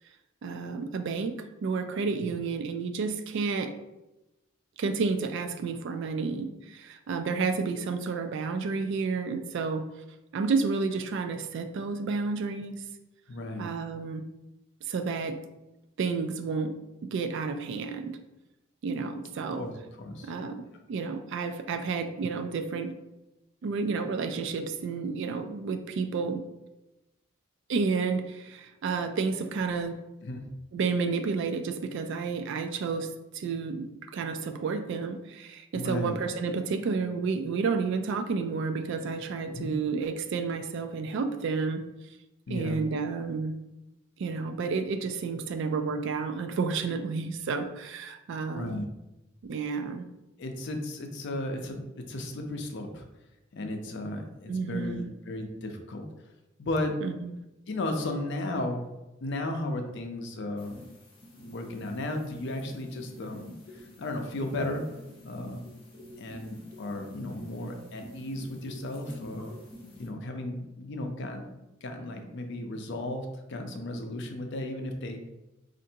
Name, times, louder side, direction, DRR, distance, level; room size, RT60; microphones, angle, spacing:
voice 1, 0.4-3.7 4.8-9.8 10.3-12.8 13.6-14.2 14.9-15.4 16.0-16.7 17.1-18.2 18.8-19.6 20.2-22.9 23.6-26.4 27.7-30.0 30.7-33.1 33.3-41.8 42.5-43.6 44.2-48.8 49.4-50.1 54.5-55.1 57.0-57.4, right 4 dB, 60° right, 7 dB, 0.3 m, -31 dB
voice 2, 13.3-13.7 19.5-20.3 30.2-30.5 35.7-36.1 39.5-39.7 42.5-42.8 48.5-48.9 50.4-53.0 53.5-56.0 56.6-57.0 57.7-58.9 59.2-60.8 61.4-64.8 65.2-65.6 66.2-75.2, left 1 dB, 60° left, 4 dB, 0.5 m, -35 dB
sound 1, 60.6-70.1, left 1 dB, 25° left, 0.8 m, -48 dB
4.3 x 2.5 x 2.7 m, 0.97 s
head